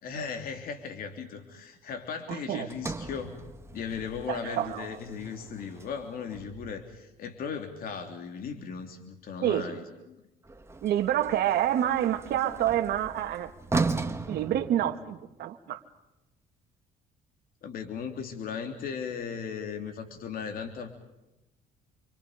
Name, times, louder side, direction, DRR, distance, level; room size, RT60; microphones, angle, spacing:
voice 1, 0.0-3.4 3.7-10.2 17.6-20.9, left 6 dB, 60° left, 5 dB, 3.3 m, -37 dB
voice 2, 2.3-2.7 4.3-5.0 9.4-9.7 10.8-13.9 14.3-15.8, right 11 dB, 70° right, 4 dB, 1.9 m, -28 dB
Sliding door, 2.7-7.0 10.4-15.4, right 3 dB, 15° right, 1.5 m, -37 dB
29.0 x 25.0 x 5.1 m, 0.94 s
cardioid pair, 110°, 17 cm